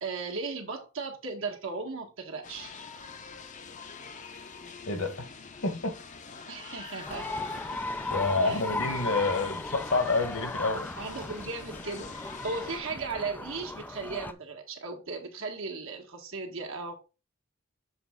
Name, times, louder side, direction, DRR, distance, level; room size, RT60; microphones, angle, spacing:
voice 1, 0.0-2.7 6.5-7.3 8.4-8.6 11.0-16.9, right 4 dB, 65° right, 1.5 m, -36 dB
sound 1, 2.4-12.8, left 5 dB, 35° left, 0.7 m, -45 dB
voice 2, 4.9-5.3 5.6-5.9 8.1-10.9, left 3 dB, 65° left, 1.4 m, -28 dB
sound 2, 7.1-14.3, left 2 dB, 10° left, 0.3 m, -36 dB
7.2 x 4.1 x 3.7 m
head